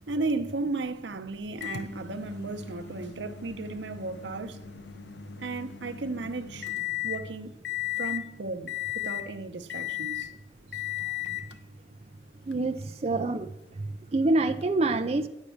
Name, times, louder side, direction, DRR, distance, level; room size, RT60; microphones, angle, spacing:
voice 1, 0.1-4.6 5.4-6.7 7.0-7.5 8.0-10.3 10.7-10.8 11.5-11.6, right 3 dB, 90° right, 0.8 m, -34 dB
Microwave oven, 1.6-7.2 7.6-8.3 8.7-9.3 9.7-10.3 10.7-11.5 12.5-12.6 14.6-14.7, left 14 dB, 75° left, 0.6 m, -36 dB
voice 2, 12.5-13.5 13.8-15.3, right 2 dB, 35° right, 0.5 m, -27 dB
10.0 x 7.3 x 6.4 m
head